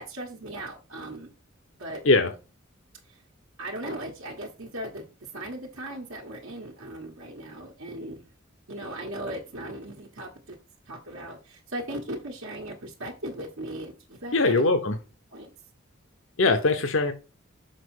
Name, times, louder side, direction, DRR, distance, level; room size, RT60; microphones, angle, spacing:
voice 1, 0.0-1.3 1.8-2.0 3.6-5.1 5.3-8.2 8.7-10.6 10.9-14.7 15.3-15.5, right 1 dB, 75° right, 1.4 m, -37 dB
voice 2, 14.3-15.0 16.4-17.1, left 3 dB, 65° left, 0.8 m, -21 dB
6.6 x 4.4 x 4.8 m
head